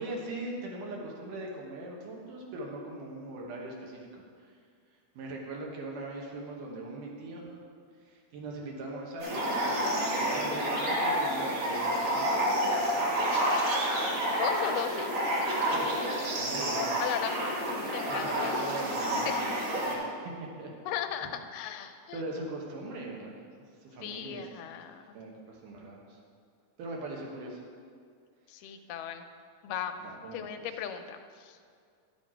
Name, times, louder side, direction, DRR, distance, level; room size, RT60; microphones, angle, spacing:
voice 1, 0.0-4.5 5.1-7.6 8.0-13.4 15.6-16.0 16.4-16.9 18.1-20.7 22.1-23.3 23.8-24.4 25.1-26.2 26.8-27.6 30.0-30.5, right 2 dB, 75° right, -1 dB, 2.8 m, -40 dB
sound 1, 9.2-19.9, equal, 40° right, 2.0 m, -29 dB
voice 2, 14.3-15.1 17.0-17.4 17.9-18.5 19.3-19.4 20.9-22.2 24.0-25.2 28.5-29.3 29.6-30.0 30.3-31.7, left 9 dB, 85° left, 7 dB, 2.2 m, -36 dB
11.5 x 7.2 x 4.4 m, 2.2 s
omnidirectional pair, 3.8 m